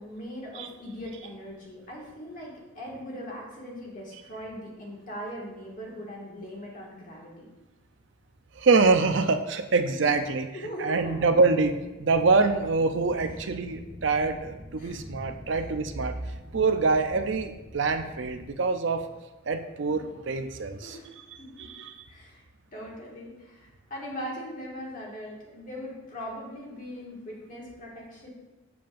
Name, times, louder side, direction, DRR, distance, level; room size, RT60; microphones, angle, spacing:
voice 1, 0.0-7.5 10.0-10.3 10.5-11.3 13.2-13.4 14.8-15.0 15.5-15.6 20.8-21.7 22.1-22.4 22.7-28.3, equal, 40° left, -4 dB, 1.9 m, -40 dB
voice 2, 8.6-10.5 10.8-16.1 16.5-19.0 19.5-21.0 21.7-22.0, right 4 dB, 60° right, 8 dB, 0.5 m, -25 dB
sound 1, 11.1-18.5, equal, 25° right, 1.2 m, -46 dB
7.5 x 7.0 x 2.5 m, 1.1 s
head